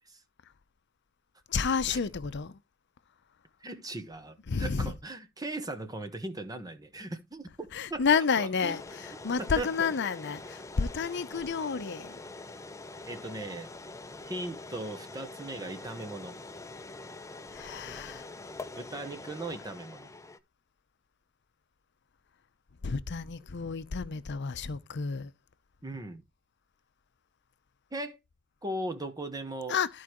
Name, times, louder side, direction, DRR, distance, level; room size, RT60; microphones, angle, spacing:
voice 1, 1.5-2.6 4.5-4.9 7.7-12.2 17.5-18.3 22.8-25.3 29.7-29.9, left 5 dB, 55° left, 0.7 m, -30 dB
voice 2, 3.6-8.8 9.4-9.9 13.1-13.7 14.2-16.4 18.8-20.1 25.8-26.2 27.9-28.2 28.6-29.8, right 2 dB, 20° right, 1.1 m, -38 dB
sound 1, 8.5-20.4, left 2 dB, 15° left, 0.6 m, -45 dB
13.5 x 4.7 x 3.0 m
head